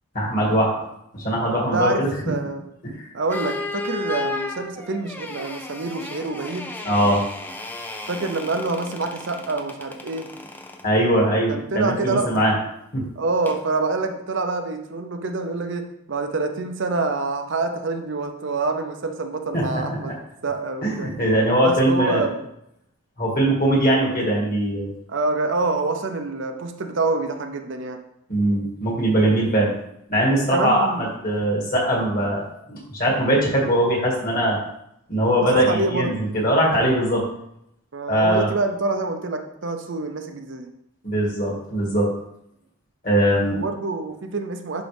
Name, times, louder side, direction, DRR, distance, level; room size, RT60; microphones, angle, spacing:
voice 1, 0.1-0.8 1.1-2.1 2.8-3.0 6.8-7.2 10.8-12.5 12.9-13.0 19.5-20.1 20.8-22.2 23.2-24.9 28.3-29.7 30.1-34.6 35.1-37.2 38.1-38.5 41.0-42.1 43.0-43.6, right 1 dB, 40° left, -3 dB, 2.1 m, -21 dB
voice 2, 1.7-2.6 3.1-6.7 8.1-10.3 11.5-12.3 13.2-20.1 20.4-21.1 21.6-22.5 25.1-28.0 30.4-31.1 35.4-36.2 37.9-40.7 43.5-44.8, right 3 dB, 55° right, 6 dB, 0.6 m, -26 dB
sound 1, 3.3-10.9 13.5-13.7, left 2 dB, 10° left, 0.4 m, -33 dB
10.0 x 3.7 x 3.4 m, 0.79 s
head